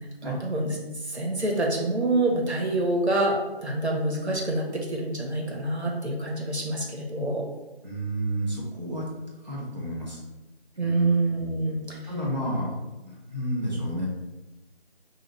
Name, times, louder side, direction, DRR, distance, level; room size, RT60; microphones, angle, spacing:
voice 1, 0.2-7.5 10.8-12.1, right 2 dB, 85° right, -1 dB, 1.1 m, -27 dB
voice 2, 7.8-9.1 9.4-10.2 10.8-11.1 12.0-14.1, equal, 40° right, -6 dB, 0.9 m, -31 dB
4.9 x 2.5 x 3.2 m, 1.1 s
figure-of-eight pair, 175°, 32 cm